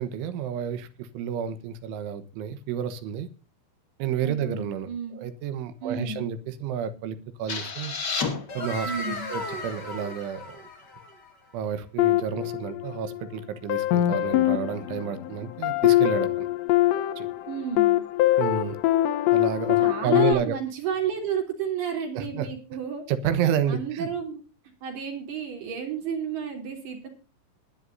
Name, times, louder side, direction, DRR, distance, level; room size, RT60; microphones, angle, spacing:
voice 1, 0.0-3.3 4.0-7.9 8.6-10.7 11.5-16.5 17.2-17.3 18.4-18.8 19.3-20.6 22.2-22.5 23.1-24.1, right 8 dB, 75° right, 12 dB, 3.6 m, -30 dB
voice 2, 4.2-5.2 5.8-6.2 8.8-9.3 17.5-18.0 19.8-23.0 23.4-24.4 24.8-27.1, right 7 dB, 55° right, 3 dB, 5.0 m, -32 dB
sound 1, 7.5-11.2, left 3 dB, 45° left, 1.3 m, -33 dB
sound 2, 12.0-13.2 13.7-20.3, left 15 dB, 75° left, 2.9 m, -23 dB
20.5 x 11.5 x 2.7 m, 0.33 s
omnidirectional pair, 5.6 m